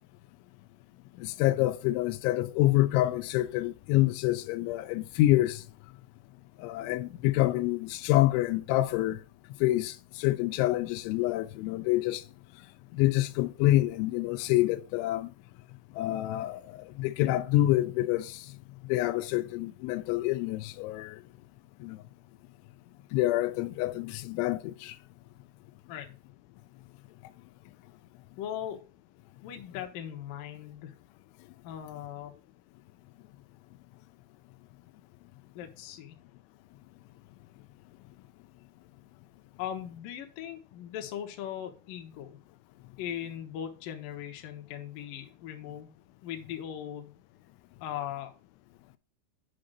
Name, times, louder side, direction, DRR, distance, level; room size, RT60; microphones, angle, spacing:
voice 1, 1.2-5.6 6.6-9.2 9.6-12.2 12.9-15.3 16.0-18.5 18.9-21.2 21.8-22.0 23.1-25.0, left 16 dB, 85° left, 2.9 m, -27 dB
voice 2, 28.4-28.8 29.4-31.0 31.6-32.3 35.6-36.2 39.6-42.4 43.0-47.1 47.8-48.3, left 10 dB, 65° left, 2.2 m, -39 dB
7.7 x 5.1 x 6.5 m
omnidirectional pair, 5.4 m